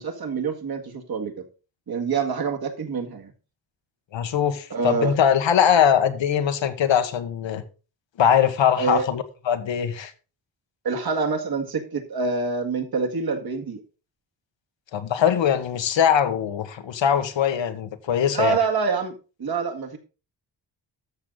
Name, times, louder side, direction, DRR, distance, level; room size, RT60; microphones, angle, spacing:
voice 1, 0.0-1.4 1.9-3.3 4.7-5.1 8.8-9.1 10.8-13.8 18.3-20.0, right 5 dB, 55° right, 1.9 m, -26 dB
voice 2, 4.1-7.6 8.2-10.1 14.9-18.6, left 8 dB, 80° left, 1.3 m, -21 dB
13.0 x 6.1 x 3.9 m
wide cardioid pair, 135°, 44 cm